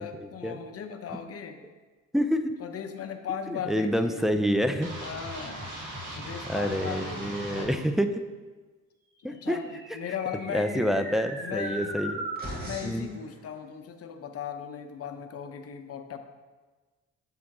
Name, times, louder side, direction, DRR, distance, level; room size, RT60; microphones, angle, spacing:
voice 1, 0.0-1.6 2.6-4.3 5.0-5.7 6.2-7.9 9.2-10.9 11.4-12.0 12.6-16.2, left 7 dB, 50° left, 5 dB, 0.8 m, -37 dB
voice 2, 2.1-2.5 3.5-4.9 6.5-8.2 9.2-9.6 10.5-12.2 12.8-13.1, equal, ahead, 8 dB, 0.5 m, -27 dB
sound 1, 4.8-7.7, right 1 dB, 90° right, 2.1 m, -38 dB
sound 2, 9.5-13.1, right 1 dB, 30° right, 2.1 m, -38 dB
7.4 x 3.8 x 5.9 m, 1.3 s
cardioid pair, 90°, 30 cm